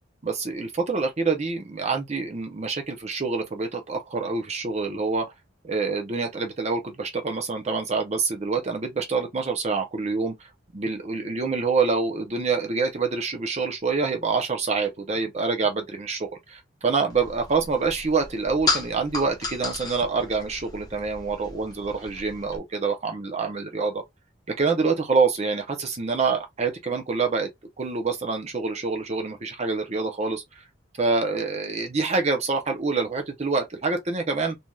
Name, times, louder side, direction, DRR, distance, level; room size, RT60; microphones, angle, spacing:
voice 1, 0.2-5.3 5.6-10.5 10.7-24.0 24.6-27.5 27.8-30.4 31.0-34.6, right 4 dB, 35° right, 0.6 m, -26 dB
sound 1, 17.1-22.6, left 3 dB, 20° left, 0.8 m, -33 dB
3.3 x 2.7 x 2.2 m
head